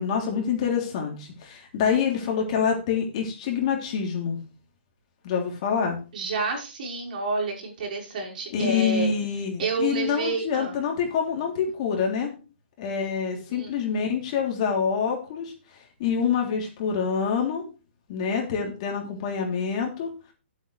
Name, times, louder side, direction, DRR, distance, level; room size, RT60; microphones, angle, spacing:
voice 1, 0.0-4.4 5.2-6.0 8.5-12.3 12.8-15.5 16.0-17.6 18.1-20.1, left 6 dB, 35° left, 1 dB, 3.6 m, -26 dB
voice 2, 6.1-9.1 9.6-10.8 13.5-13.7, right 2 dB, 45° right, -1 dB, 5.2 m, -29 dB
14.5 x 8.2 x 3.4 m, 0.33 s
hypercardioid pair, 165°, 6 cm